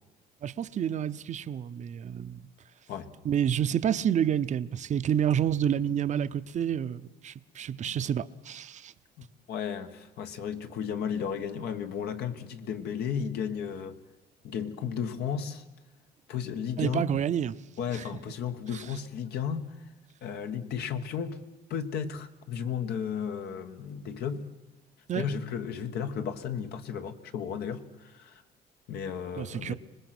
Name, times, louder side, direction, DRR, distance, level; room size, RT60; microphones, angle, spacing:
voice 1, 0.4-2.4 3.2-8.9 16.8-17.6 17.9-18.1 18.7-18.8 25.1-25.3 29.4-29.7, right 9 dB, 45° right, 0.7 m, -29 dB
voice 2, 9.2-14.0 14.4-15.6 16.3-17.2 17.8-19.9 20.2-21.4 21.7-24.5 25.1-28.4 28.9-29.7, left 7 dB, 70° left, 1.6 m, -34 dB
25.0 x 20.0 x 6.1 m
cardioid pair, 110°, 17 cm